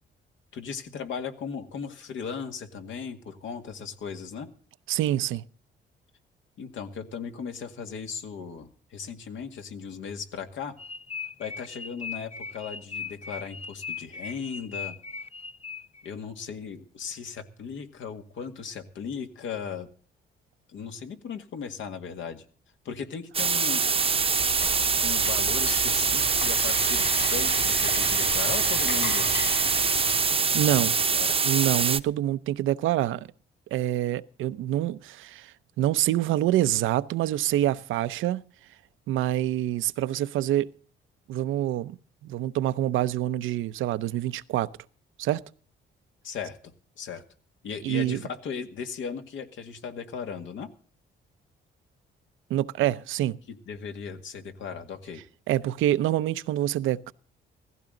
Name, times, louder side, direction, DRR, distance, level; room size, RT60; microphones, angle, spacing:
voice 1, 0.5-4.5 6.6-10.7 11.4-14.9 16.0-19.9 20.7-22.5 22.8-23.9 24.8-29.3 30.6-30.8 31.1-31.4 46.2-46.6 47.0-47.2 47.6-50.7 53.5-55.2, left 6 dB, 75° left, 2.0 m, -37 dB
voice 2, 4.9-5.4 30.5-31.0 31.4-33.3 33.7-38.4 39.1-40.7 41.3-42.0 42.2-44.7 45.2-45.4 47.8-48.2 52.5-53.4 55.5-57.1, right 13 dB, 85° right, 0.7 m, -26 dB
sound 1, 10.8-16.1, left 5 dB, 30° left, 0.9 m, -38 dB
sound 2, 23.3-32.0, right 5 dB, 30° right, 0.8 m, -24 dB
Frying (food), 23.6-30.7, left 5 dB, 55° left, 4.8 m, -36 dB
16.5 x 15.0 x 3.9 m
cardioid pair, 90°, 20 cm